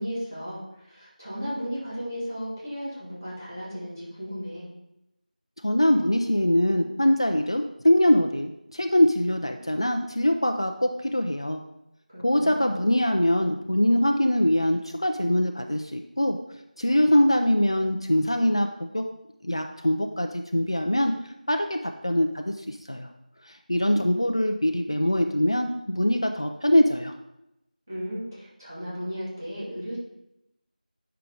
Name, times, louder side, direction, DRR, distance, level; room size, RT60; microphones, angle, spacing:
voice 1, 0.0-4.7 12.1-12.7 27.9-30.0, equal, 25° right, -9 dB, 2.3 m, -35 dB
voice 2, 5.6-11.6 12.2-16.4 16.8-19.0 19.4-23.1 23.4-27.1, left 1 dB, 35° left, 5 dB, 0.4 m, -23 dB
8.6 x 5.6 x 3.8 m, 0.86 s
figure-of-eight pair, 180°, 5 cm